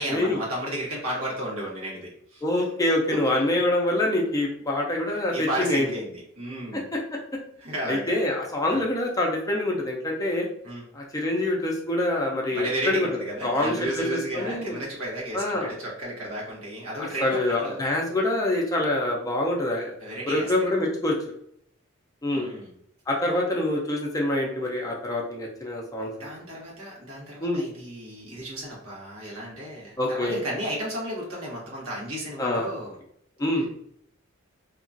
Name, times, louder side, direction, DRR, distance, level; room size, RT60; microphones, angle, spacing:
voice 1, 0.0-2.4 3.1-3.3 5.3-6.9 7.6-8.2 8.7-8.8 10.6-10.8 12.5-17.8 20.0-20.5 22.3-22.7 26.2-33.0 33.6-33.7, right 1 dB, 85° right, -4 dB, 1.2 m, -33 dB
voice 2, 2.4-5.9 6.7-7.2 7.9-10.5 10.9-13.1 13.4-14.7 15.3-15.7 17.0-19.9 20.3-21.2 22.2-22.5 23.1-26.3 27.4-27.6 30.0-30.4 32.4-32.7 33.4-33.7, left 1 dB, 15° left, -1 dB, 0.5 m, -25 dB
2.8 x 2.4 x 2.6 m, 0.70 s
head